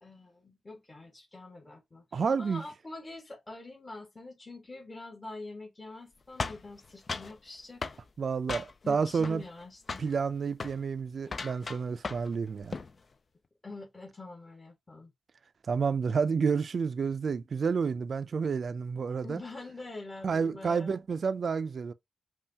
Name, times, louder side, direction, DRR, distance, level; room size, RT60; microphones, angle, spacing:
voice 1, 0.0-7.8 8.8-10.0 13.6-15.1 19.2-21.0, left 2 dB, 30° left, 1.7 m, -45 dB
voice 2, 2.1-2.6 8.2-9.4 10.0-12.7 15.7-19.4 20.2-21.9, right 5 dB, 65° right, 0.4 m, -30 dB
sound 1, 6.4-7.4 7.8-8.0 8.5-8.9 9.2-9.6 9.9-10.1 10.5-10.8 11.2-12.3 12.6-12.9, left 4 dB, 50° left, 0.5 m, -37 dB
5.5 x 2.4 x 2.8 m
cardioid pair, 70°, 0 cm